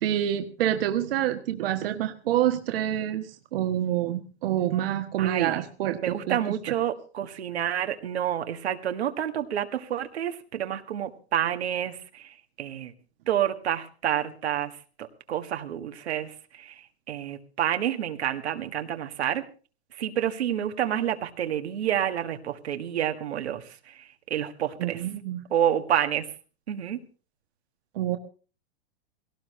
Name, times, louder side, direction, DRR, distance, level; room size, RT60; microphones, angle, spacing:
voice 1, 0.0-6.7 24.8-25.4 27.9-28.2, right 12 dB, 60° right, 7 dB, 1.4 m, -27 dB
voice 2, 5.2-5.6 6.0-12.3 12.6-12.9 13.3-14.7 15.3-16.7 17.1-19.4 20.0-23.6 24.3-25.0 25.5-26.3 26.7-27.0, right 10 dB, 80° right, 6 dB, 1.8 m, -28 dB
17.5 x 17.0 x 3.2 m, 0.36 s
hypercardioid pair, 135°, 32 cm